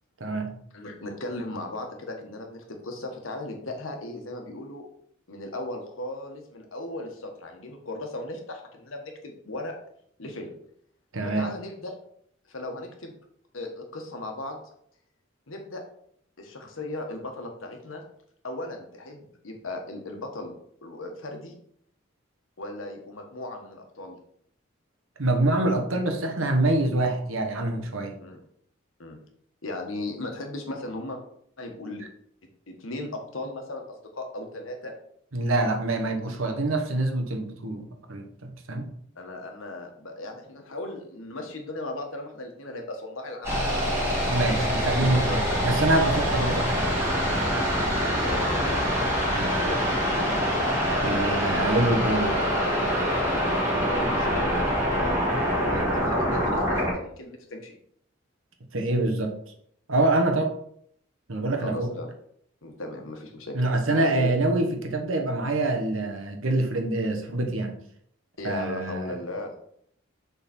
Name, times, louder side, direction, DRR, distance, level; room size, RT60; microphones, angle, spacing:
voice 1, 0.2-0.5 11.1-11.5 25.2-28.1 35.3-38.8 44.3-46.9 49.3-49.7 51.0-52.4 58.7-59.5 59.9-60.5 61.3-61.9 63.5-67.7 68.4-69.1, right 2 dB, 80° right, 4 dB, 1.1 m, -25 dB
voice 2, 0.7-4.8 5.3-9.7 10.2-10.5 11.2-11.9 12.5-13.1 13.5-14.6 15.5-15.8 16.4-18.0 18.4-20.5 20.8-21.5 22.6-24.2 28.2-28.4 29.0-29.2 29.6-31.2 31.6-32.1 32.7-34.9 39.2-43.6 44.4-45.6 48.2-48.8 49.6-50.3 53.7-57.8 61.6-62.1 62.6-63.6 63.9-64.3 68.4-69.5, left 2 dB, 80° left, 3 dB, 1.3 m, -36 dB
sound 1, 43.4-56.9, equal, 15° right, 2.0 m, -25 dB
6.9 x 4.0 x 4.3 m, 0.67 s
head